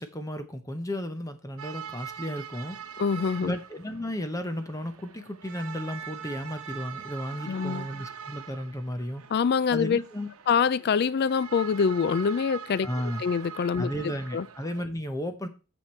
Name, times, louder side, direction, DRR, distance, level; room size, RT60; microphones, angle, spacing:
voice 1, 0.0-2.8 3.4-9.2 9.7-10.3 12.8-13.2 13.8-15.5, equal, 15° left, 0.8 m, -34 dB
sound 1, 1.6-14.8, right 8 dB, 80° right, 1.0 m, -43 dB
voice 2, 3.0-3.6 7.5-7.8 9.3-10.0 10.5-12.9 13.2-13.9 14.3-14.4, left 6 dB, 50° left, 0.3 m, -25 dB
9.0 x 6.3 x 4.4 m
head